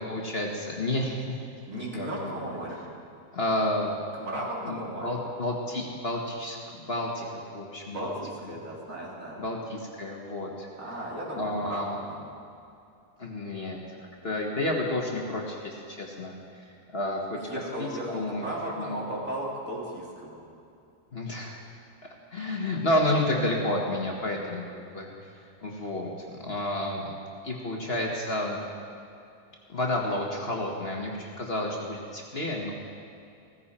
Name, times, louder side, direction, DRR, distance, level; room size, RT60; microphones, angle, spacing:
voice 1, 0.1-1.4 1.7-2.4 3.3-4.0 4.6-7.3 7.5-8.1 9.4-10.7 11.4-12.0 13.2-13.8 14.2-16.7 16.9-17.5 17.8-18.5 18.8-19.0 21.1-21.6 22.3-25.1 25.6-27.1 27.4-28.6 29.7-32.7, left 1 dB, 40° left, -1 dB, 1.6 m, -30 dB
voice 2, 1.7-2.8 4.1-5.1 7.9-9.4 10.8-12.3 17.4-20.4, right 1 dB, 55° right, -5 dB, 3.3 m, -35 dB
16.5 x 15.0 x 4.3 m, 2.6 s
omnidirectional pair, 1.7 m